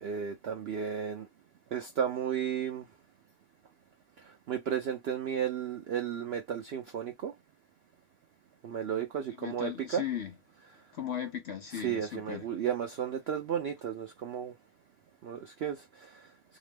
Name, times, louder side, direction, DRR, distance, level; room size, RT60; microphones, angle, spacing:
voice 1, 0.0-1.3 1.7-2.8 4.5-7.3 8.6-10.0 11.7-14.5 15.2-16.2, right 8 dB, 75° right, 0.5 m, -33 dB
voice 2, 9.4-10.3 10.9-12.5, left 9 dB, 65° left, 0.7 m, -37 dB
2.8 x 2.0 x 3.2 m
omnidirectional pair, 1.6 m